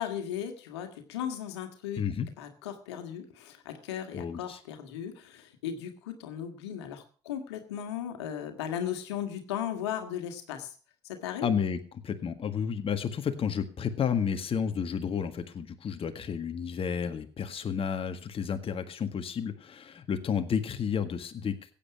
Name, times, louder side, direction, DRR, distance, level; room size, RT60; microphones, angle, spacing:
voice 1, 0.0-2.0 2.4-10.7 11.0-11.5, left 9 dB, 85° left, 6 dB, 1.9 m, -36 dB
voice 2, 2.0-2.3 4.1-4.6 11.4-11.8 12.0-21.7, left 7 dB, 45° left, 8 dB, 1.7 m, -31 dB
15.5 x 8.9 x 6.0 m, 0.41 s
hypercardioid pair, 60°, 14 cm